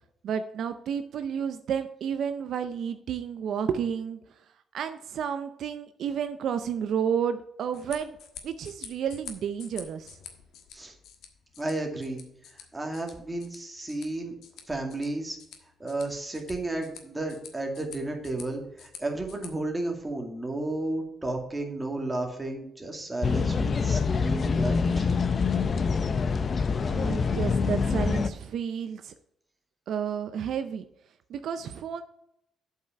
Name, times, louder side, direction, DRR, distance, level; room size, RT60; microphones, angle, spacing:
voice 1, 0.2-4.2 4.7-8.2 8.4-10.2 26.9-29.1 29.9-30.8 31.3-32.0, right 8 dB, 70° right, 9 dB, 0.5 m, -31 dB
sound 1, 7.6-19.5, left 7 dB, 80° left, 1.4 m, -49 dB
voice 2, 11.6-12.2 12.7-14.3 14.7-15.4 15.8-25.1, right 2 dB, 15° right, 2 dB, 2.1 m, -33 dB
sound 2, 23.2-28.3, left 5 dB, 40° left, 0.6 m, -25 dB
8.0 x 5.6 x 5.7 m, 0.78 s
cardioid pair, 90°, 0 cm